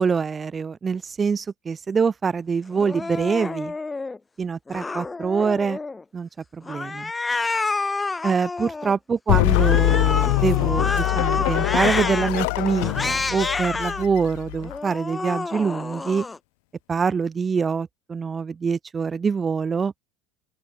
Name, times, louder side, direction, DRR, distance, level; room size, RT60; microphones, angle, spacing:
voice 1, 0.0-3.7 4.4-5.8 6.1-7.1 8.2-16.3 16.9-19.9, right 5 dB, 15° right, 0.9 m, -25 dB
Cat, 2.7-4.2 4.7-6.0 6.6-8.9 9.5-12.3 12.8-14.1 14.6-16.4, left 3 dB, 10° left, 0.8 m, -29 dB
sound 1, 9.3-14.8, left 30 dB, 70° left, 0.3 m, -23 dB
open air
cardioid pair, 165°, 0 cm